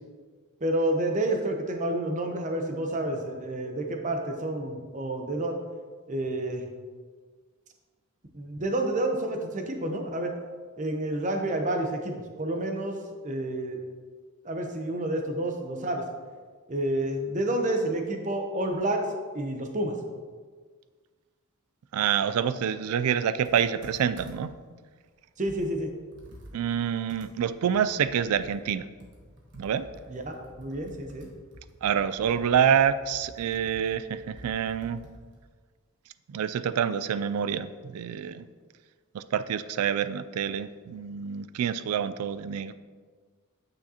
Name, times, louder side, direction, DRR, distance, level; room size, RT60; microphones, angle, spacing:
voice 1, 0.6-5.6 6.1-6.7 8.3-10.3 10.8-12.1 12.4-13.0 13.2-13.8 14.4-16.0 16.7-19.1 19.3-20.0 25.4-25.9 30.1-31.3, right 1 dB, 35° right, 4 dB, 0.7 m, -29 dB
voice 2, 21.9-24.5 26.5-28.8 29.6-29.9 31.8-35.0 36.3-38.5 39.1-42.7, right 8 dB, 80° right, 14 dB, 0.3 m, -27 dB
Computer keyboard, 23.4-24.6 25.1-25.2 25.5-28.7 29.0-35.5, equal, 55° right, 1.3 m, -50 dB
8.6 x 6.4 x 2.8 m, 1.5 s
head